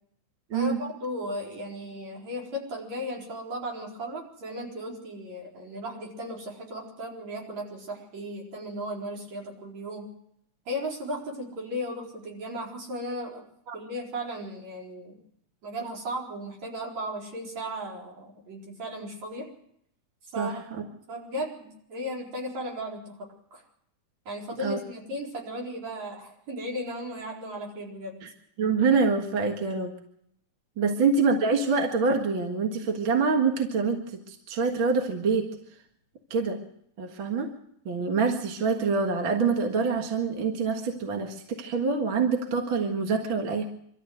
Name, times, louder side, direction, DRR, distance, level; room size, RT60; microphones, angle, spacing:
voice 1, 0.5-10.1 10.7-13.4 13.7-15.2 15.6-19.5 20.3-23.2 23.5-23.6 24.3-28.2 30.8-30.9, equal, 65° right, -1 dB, 5.5 m, -36 dB
voice 2, 20.4-20.8 24.6-24.8 28.2-28.3 28.6-29.9 30.8-35.5 36.3-36.6 37.0-37.5 37.9-43.6, right 4 dB, 45° right, 3 dB, 2.3 m, -26 dB
24.5 x 13.5 x 7.9 m, 0.72 s
omnidirectional pair, 3.4 m